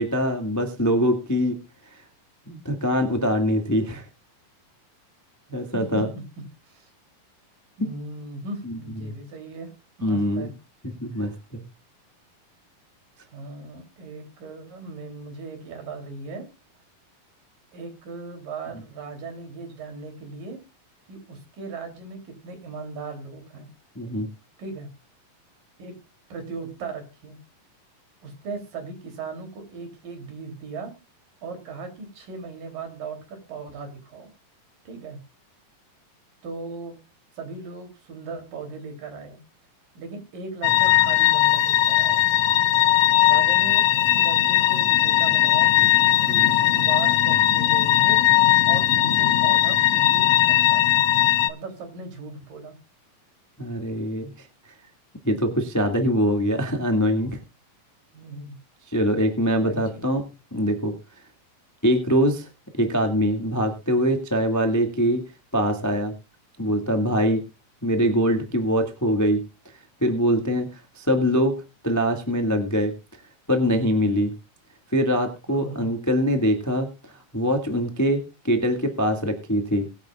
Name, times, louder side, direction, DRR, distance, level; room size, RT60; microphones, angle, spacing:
voice 1, 0.0-1.6 2.5-4.0 5.5-6.1 8.6-9.1 10.0-10.5 11.0-11.6 23.9-24.3 46.2-46.5 53.6-54.5 55.2-57.4 58.9-60.2 60.5-60.9 61.8-62.5 62.8-65.2 65.5-66.1 66.6-67.4 67.8-69.4 70.0-71.6 71.8-72.9 73.5-74.3 74.9-76.9 77.3-79.8, equal, 10° left, 5 dB, 1.1 m, -23 dB
voice 2, 5.7-6.9 7.8-9.7 10.0-10.5 11.1-11.4 13.3-16.5 17.7-20.6 21.1-23.7 24.6-24.9 25.8-25.9 26.3-27.4 28.2-30.9 31.4-34.3 34.8-35.2 36.4-36.9 37.4-39.4 39.9-42.3 43.2-48.2 48.7-51.1 51.5-52.8 58.1-58.6 59.6-60.0 75.5-75.9, right 4 dB, 65° right, 6 dB, 4.9 m, -38 dB
sound 1, 40.6-51.5, left 13 dB, 90° left, 1.3 m, -19 dB
22.5 x 9.2 x 2.4 m, 0.28 s
omnidirectional pair, 4.1 m